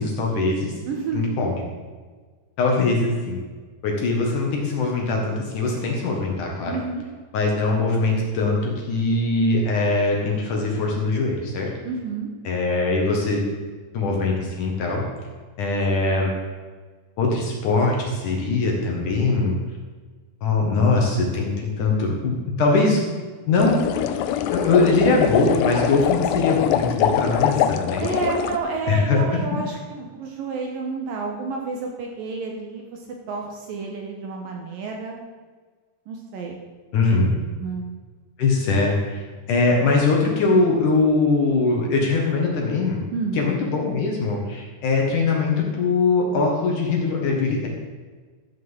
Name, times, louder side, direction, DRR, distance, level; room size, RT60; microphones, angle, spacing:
voice 1, 0.0-0.7 1.1-1.6 2.6-3.4 3.8-6.7 7.3-11.7 12.4-13.4 13.9-15.0 15.6-16.3 17.2-19.6 20.4-23.0 23.5-23.8 24.5-28.2 28.9-29.2 36.9-37.3 38.4-43.0 43.3-47.7, left 3 dB, 55° left, -1 dB, 2.6 m, -21 dB
voice 2, 0.9-1.3 6.7-7.0 11.8-12.3 28.0-33.0 33.3-35.2 36.1-36.6 37.6-37.9 43.1-43.4, right 4 dB, 65° right, 1 dB, 2.5 m, -30 dB
sound 1, 23.6-28.6, left 10 dB, 90° left, 2.8 m, -23 dB
13.0 x 7.6 x 7.2 m, 1.4 s
omnidirectional pair, 5.0 m